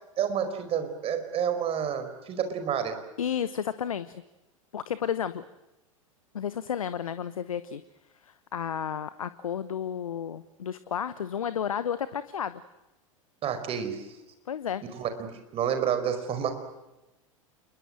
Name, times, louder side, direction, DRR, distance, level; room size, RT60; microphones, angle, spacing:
voice 1, 0.2-3.0 13.4-14.1 14.9-16.5, right 8 dB, 35° right, 9 dB, 5.0 m, -29 dB
voice 2, 3.2-4.2 4.7-5.4 6.3-7.8 8.2-12.6 14.5-14.8, left 8 dB, 75° left, 14 dB, 1.0 m, -32 dB
28.5 x 22.5 x 7.8 m, 0.98 s
figure-of-eight pair, 90°, 18 cm